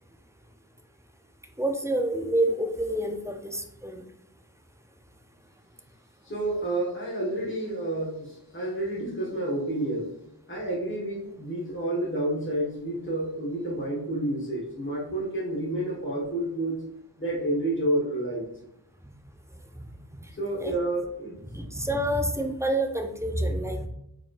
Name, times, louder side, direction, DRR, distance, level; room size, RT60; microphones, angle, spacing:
voice 1, 1.6-4.0 19.8-19.9 20.6-20.8 21.5-23.9, right 1 dB, 10° right, 4 dB, 0.4 m, -28 dB
voice 2, 6.2-10.1 10.5-16.8 17.2-18.5 20.4-21.4, right 1 dB, 30° left, -5 dB, 1.4 m, -29 dB
4.0 x 3.6 x 2.5 m, 0.81 s
wide cardioid pair, 50°, 39 cm